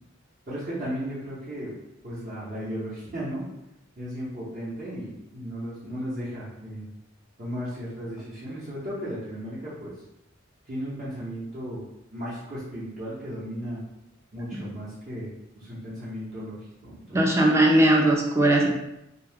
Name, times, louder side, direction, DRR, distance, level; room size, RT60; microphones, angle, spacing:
voice 1, 0.5-1.7 2.0-3.4 4.0-6.9 7.4-9.9 10.7-11.8 12.1-13.8 14.3-17.2, equal, 45° right, -11 dB, 0.9 m, -35 dB
voice 2, 17.1-18.7, right 1 dB, 15° right, 0 dB, 0.4 m, -19 dB
2.7 x 2.3 x 3.4 m, 0.88 s
head